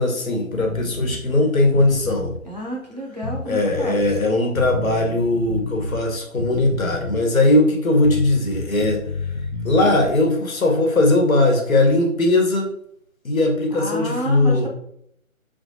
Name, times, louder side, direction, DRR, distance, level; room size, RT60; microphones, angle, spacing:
voice 1, 0.0-2.3 3.5-9.0 9.6-12.7 13.2-14.7, left 2 dB, 70° left, 1 dB, 1.3 m, -19 dB
sound 1, 0.5-1.2 1.7-2.4 3.2-4.2 4.5-6.0 6.4-7.3 8.0-10.1, left 3 dB, 45° left, 0.6 m, -30 dB
voice 2, 2.4-4.0 13.7-14.7, right 1 dB, 30° right, -4 dB, 0.5 m, -30 dB
4.9 x 3.2 x 2.7 m, 0.73 s
figure-of-eight pair, 165°, 42 cm